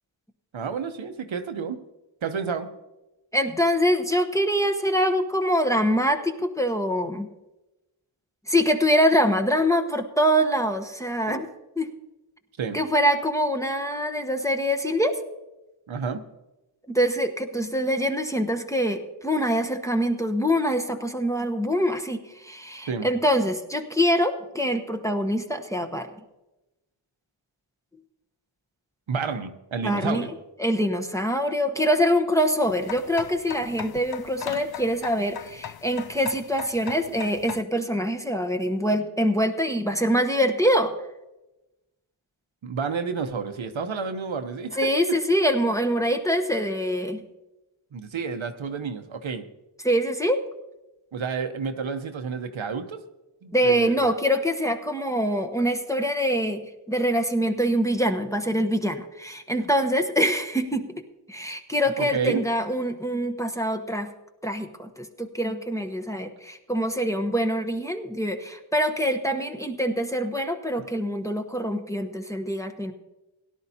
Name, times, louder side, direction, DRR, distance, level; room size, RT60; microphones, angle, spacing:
voice 1, 0.5-1.8 2.2-2.7 11.3-11.4 12.6-12.8 15.9-16.3 22.9-23.1 29.1-30.3 42.6-45.2 47.9-49.4 51.1-53.0 53.4-54.1 62.0-62.4, right 5 dB, 70° right, 7 dB, 0.9 m, -30 dB
voice 2, 3.3-7.3 8.5-11.5 11.8-11.9 12.7-15.1 16.9-26.1 29.8-30.2 30.6-40.9 44.7-47.2 49.8-50.4 53.5-56.6 56.9-61.0 61.3-64.1 64.4-72.9, equal, 5° left, 4 dB, 0.9 m, -24 dB
sound 1, 32.6-37.6, left 8 dB, 50° left, 0.5 m, -39 dB
17.5 x 11.0 x 2.8 m, 1.0 s
wide cardioid pair, 55°, 49 cm